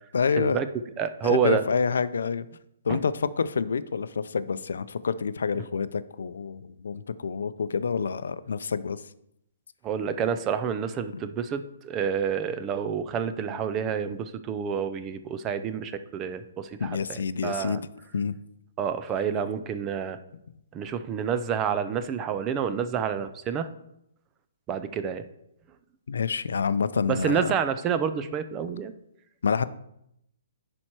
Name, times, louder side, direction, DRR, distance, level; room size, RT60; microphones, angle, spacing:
voice 1, 0.1-0.6 1.2-2.5 2.8-9.0 16.8-17.8 18.1-18.3 26.1-27.5 29.4-29.6, left 5 dB, 80° left, 15 dB, 0.5 m, -27 dB
voice 2, 1.0-1.6 2.9-3.0 9.8-17.8 18.8-20.2 20.7-23.7 24.7-25.3 27.1-28.9, right 7 dB, 15° right, 10 dB, 0.4 m, -28 dB
11.0 x 4.4 x 4.5 m, 0.80 s
hypercardioid pair, 175°, 0 cm